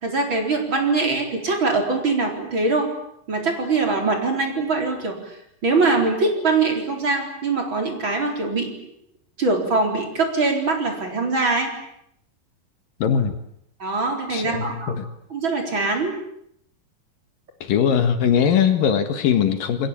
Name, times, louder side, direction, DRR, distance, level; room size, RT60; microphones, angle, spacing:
voice 1, 0.0-2.9 3.3-5.3 5.6-8.7 9.4-11.7 13.8-14.9 15.3-16.2, right 3 dB, 30° right, 3 dB, 4.7 m, -22 dB
voice 2, 13.0-13.3 14.3-15.1 17.6-19.9, left 8 dB, 70° left, 9 dB, 3.3 m, -20 dB
29.0 x 22.0 x 8.6 m, 0.73 s
omnidirectional pair, 4.2 m